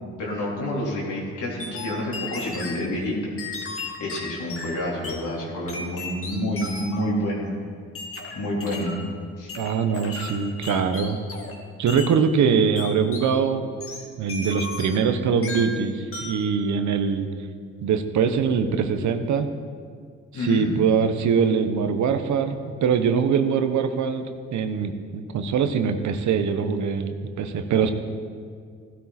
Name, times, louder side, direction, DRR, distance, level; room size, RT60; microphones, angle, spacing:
voice 1, 0.2-3.3 4.0-7.5 8.3-8.9 9.4-9.5 20.3-20.7, left 1 dB, 80° left, -4 dB, 3.8 m, -28 dB
sound 1, 1.6-2.9 3.4-5.2 5.7-7.1 7.9-9.0 9.5-11.6 11.9-12.1 12.8-13.3 13.8-15.1 15.4-15.8 16.1-16.5, left 3 dB, 45° left, 2.1 m, -35 dB
voice 2, 9.6-11.2 11.8-13.7 14.2-17.3 17.8-19.5 20.3-27.9, right 6 dB, 70° right, 9 dB, 1.1 m, -23 dB
15.5 x 13.0 x 4.3 m, 2.2 s
cardioid pair, 90°, 30 cm